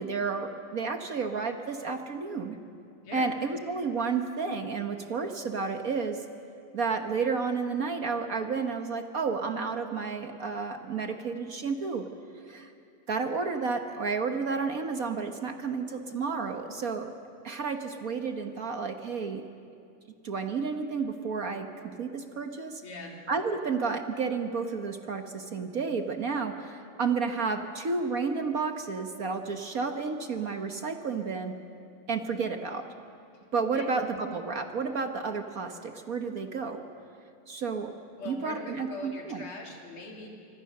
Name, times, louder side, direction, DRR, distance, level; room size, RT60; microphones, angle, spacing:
voice 1, 0.0-2.6 3.1-6.2 6.7-12.0 12.5-12.7 13.1-17.1 17.4-19.4 20.2-22.8 23.3-31.5 32.1-32.8 33.5-36.8 37.5-37.9 38.2-39.5, right 4 dB, 50° right, 6 dB, 1.4 m, -31 dB
voice 2, 22.8-23.2 33.8-33.9 38.2-40.3, left 3 dB, 80° left, 0 dB, 3.9 m, -41 dB
26.0 x 24.5 x 6.6 m, 2.4 s
omnidirectional pair, 2.3 m